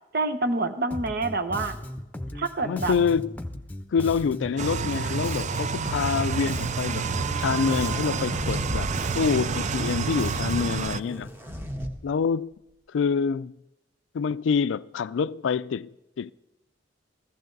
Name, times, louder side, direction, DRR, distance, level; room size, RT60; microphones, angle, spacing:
voice 1, 0.1-1.8 2.3-2.9, right 3 dB, 55° right, 1.1 m, -27 dB
Bass guitar, 0.9-10.8, left 1 dB, 10° left, 0.9 m, -37 dB
voice 2, 2.6-3.3 3.9-8.9 9.1-11.3 12.0-12.5 12.9-13.5 14.1-16.3, left 6 dB, 75° left, 0.4 m, -26 dB
sound 1, 4.6-11.0, right 6 dB, 40° right, 0.4 m, -29 dB
sound 2, 7.8-8.9 9.3-9.6 10.9-11.9, equal, 15° right, 1.4 m, -34 dB
15.5 x 14.5 x 4.0 m
head